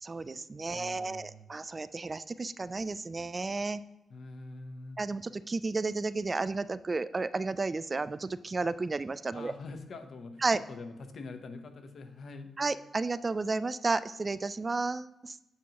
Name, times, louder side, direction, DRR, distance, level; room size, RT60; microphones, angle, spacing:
voice 1, 0.0-3.8 5.0-9.5 10.4-10.6 12.6-15.4, right 3 dB, 35° right, 15 dB, 0.3 m, -32 dB
voice 2, 0.7-1.5 4.1-5.0 9.3-10.4 10.7-12.5, left 3 dB, 65° left, 7 dB, 0.9 m, -44 dB
8.4 x 5.7 x 3.0 m, 0.91 s
cardioid pair, 65°, 0 cm